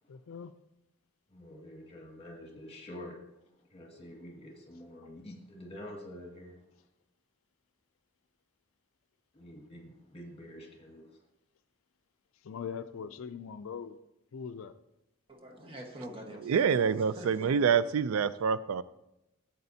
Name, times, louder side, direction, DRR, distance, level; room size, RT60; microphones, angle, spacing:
voice 1, 0.1-0.5 12.4-14.0 14.3-14.8, left 6 dB, 70° left, 12 dB, 0.4 m, -41 dB
voice 2, 1.3-3.2 3.7-6.6 9.3-11.1, left 1 dB, 30° left, 0 dB, 1.9 m, -47 dB
voice 3, 15.3-17.6, right 1 dB, 25° right, 1 dB, 1.3 m, -45 dB
voice 4, 16.4-18.8, right 6 dB, 80° right, 16 dB, 0.4 m, -26 dB
13.5 x 7.8 x 2.7 m, 0.89 s
head